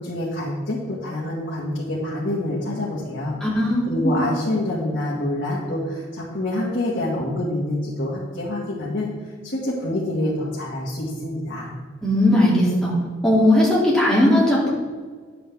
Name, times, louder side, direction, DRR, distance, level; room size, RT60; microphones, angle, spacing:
voice 1, 0.0-3.4 3.8-9.1 9.4-11.7, left 1 dB, 65° left, -6 dB, 1.7 m, -26 dB
voice 2, 3.4-4.1 12.0-12.9 13.2-14.7, left 1 dB, 5° left, -7 dB, 2.5 m, -18 dB
10.0 x 7.8 x 3.5 m, 1.6 s
head